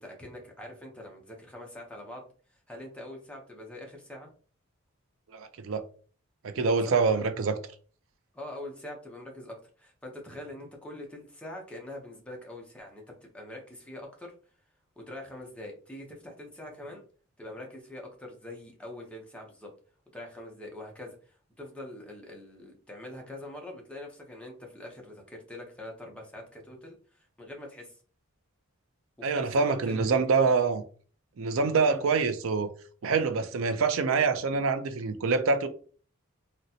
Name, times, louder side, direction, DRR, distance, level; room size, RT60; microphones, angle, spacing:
voice 1, 0.0-2.3 2.7-4.3 6.9-7.2 8.3-14.3 15.0-17.0 17.4-19.7 20.1-28.0 29.2-30.1 30.4-30.5 31.8-32.0, left 1 dB, 5° left, 0.7 m, -44 dB
voice 2, 5.3-5.8 6.4-7.6 29.2-30.8 31.4-32.7 33.0-35.7, right 4 dB, 65° right, 0.4 m, -25 dB
3.9 x 2.1 x 2.7 m
head